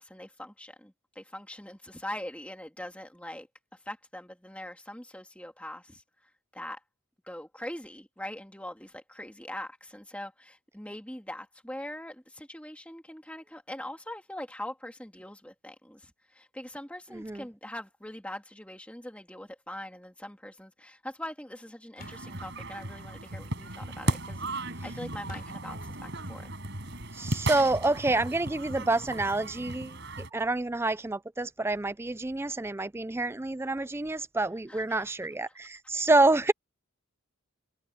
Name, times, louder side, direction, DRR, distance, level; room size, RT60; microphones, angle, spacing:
voice 1, 0.0-3.5 3.9-6.8 7.2-26.5 34.7-35.0, left 1 dB, 5° left, 2.3 m, -42 dB
voice 2, 17.1-17.4 27.1-36.5, right 2 dB, 10° right, 0.3 m, -28 dB
Clapping, 22.0-22.3 25.3-25.7, left 6 dB, 40° left, 5.4 m, -52 dB
sound 1, 22.0-30.3, right 1 dB, 50° right, 7.9 m, -36 dB
head